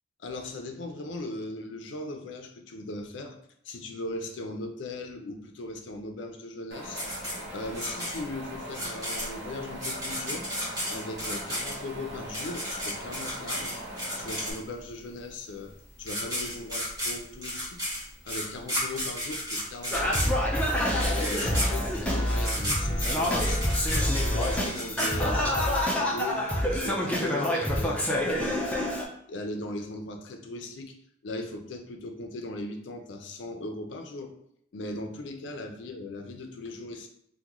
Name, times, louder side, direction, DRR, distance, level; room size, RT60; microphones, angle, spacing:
voice 1, 0.2-3.4 3.6-7.0 7.5-10.5 10.9-13.8 14.2-15.7 16.0-17.9 18.2-20.4 20.8-23.6 23.9-26.5 26.8-28.8 29.3-30.9 31.2-34.3 34.7-37.1, left 2 dB, 65° left, 4 dB, 0.5 m, -38 dB
Wind, 6.7-14.5, equal, 60° right, 0.8 m, -41 dB
sound 1, 7.0-14.9 15.7-15.8 16.0-25.7, equal, 20° right, 1.2 m, -33 dB
Singing, 19.9-29.0, left 1 dB, 5° left, 0.4 m, -27 dB
2.9 x 2.2 x 3.5 m, 0.71 s
head